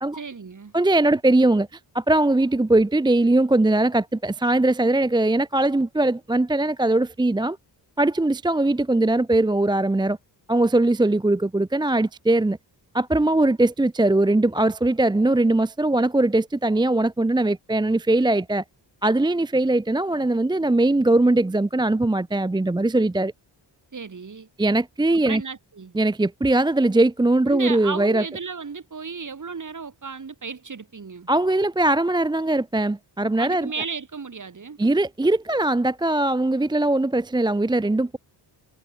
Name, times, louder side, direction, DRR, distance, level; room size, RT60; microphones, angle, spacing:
voice 1, 0.1-0.7 23.9-24.5 25.2-25.9 27.5-31.3 33.4-34.8, right 5 dB, 40° right, 6.4 m, -34 dB
voice 2, 0.7-7.6 8.0-10.2 10.5-12.6 12.9-18.6 19.0-23.3 24.6-25.4 25.9-28.2 31.3-33.7 34.8-38.2, right 2 dB, 10° right, 0.6 m, -21 dB
wide cardioid pair, 115°, 44 cm